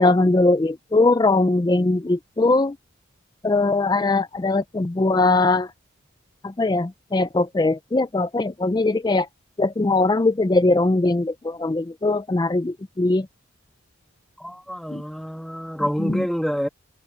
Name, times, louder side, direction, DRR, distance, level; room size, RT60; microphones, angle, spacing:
voice 1, 0.0-2.7 3.4-5.7 6.6-9.3 9.6-13.3 14.9-15.0 16.0-16.2, left 2 dB, 20° left, 0.3 m, -20 dB
voice 2, 14.4-16.7, equal, ahead, 1.9 m, -27 dB
head